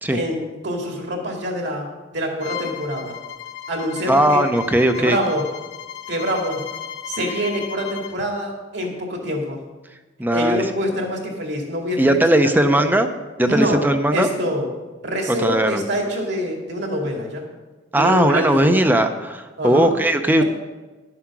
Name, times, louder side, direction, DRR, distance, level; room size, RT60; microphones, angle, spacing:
voice 1, 0.1-3.2 3.7-4.4 4.9-5.5 6.1-6.6 7.1-9.6 10.3-13.0 13.4-13.9 14.1-14.7 15.0-17.5 17.9-18.8 19.6-19.9, equal, 65° right, 1 dB, 2.4 m, -25 dB
Bowed string instrument, 2.4-8.2, left 9 dB, 70° left, 1.0 m, -35 dB
voice 2, 4.1-5.2 10.2-10.7 12.0-13.1 13.4-14.3 15.4-15.8 17.9-20.4, right 1 dB, 10° right, 7 dB, 0.6 m, -18 dB
11.5 x 7.6 x 6.0 m, 1.2 s
head